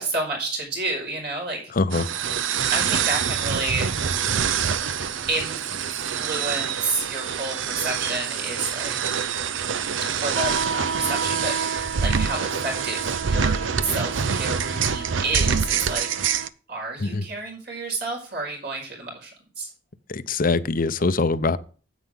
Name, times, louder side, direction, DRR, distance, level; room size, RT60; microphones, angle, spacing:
voice 1, 0.0-1.6 2.7-3.9 5.3-5.6 5.9-9.1 10.0-16.1 16.7-19.3 19.6-19.7, right 3 dB, 60° right, 0 dB, 5.3 m, -30 dB
voice 2, 1.8-2.1 17.0-17.2 20.1-21.6, left 3 dB, 50° left, 14 dB, 0.6 m, -23 dB
sound 1, 1.9-16.5, right 6 dB, 90° right, 0.6 m, -25 dB
9.7 x 8.3 x 3.7 m, 0.38 s
head